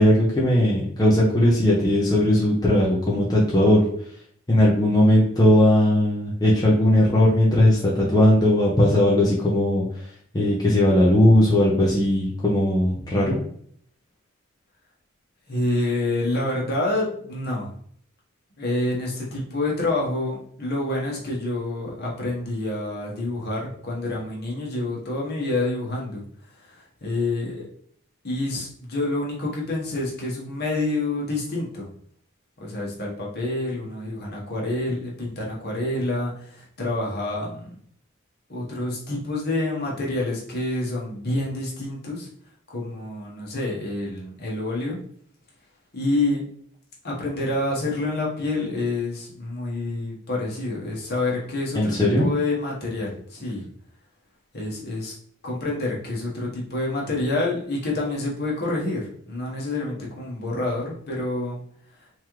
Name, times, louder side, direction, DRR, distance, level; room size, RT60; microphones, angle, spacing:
voice 1, 0.0-3.8 4.5-9.8 10.3-13.4 51.7-52.3, left 1 dB, 20° left, -5 dB, 0.7 m, -18 dB
voice 2, 15.5-17.7 18.6-26.2 26.6-27.7 28.2-31.9 32.6-37.7 38.5-42.3 42.7-45.0 45.9-46.4 47.0-53.6 54.5-55.1 55.4-61.6, left 2 dB, 50° left, -3 dB, 1.2 m, -27 dB
3.6 x 3.1 x 3.0 m, 0.62 s
head